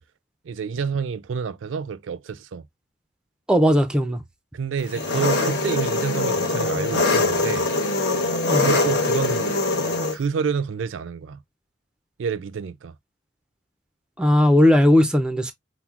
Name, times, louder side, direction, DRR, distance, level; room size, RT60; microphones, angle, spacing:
voice 1, 0.4-2.6 4.5-7.7 8.6-9.6 10.1-11.4 12.2-12.9, right 6 dB, 80° right, 0.4 m, -28 dB
voice 2, 3.5-4.2 8.4-8.7 14.2-15.5, left 1 dB, 5° right, 0.4 m, -17 dB
Engine, 4.9-10.1, left 2 dB, 60° left, 0.9 m, -22 dB
5.8 x 2.0 x 2.3 m
head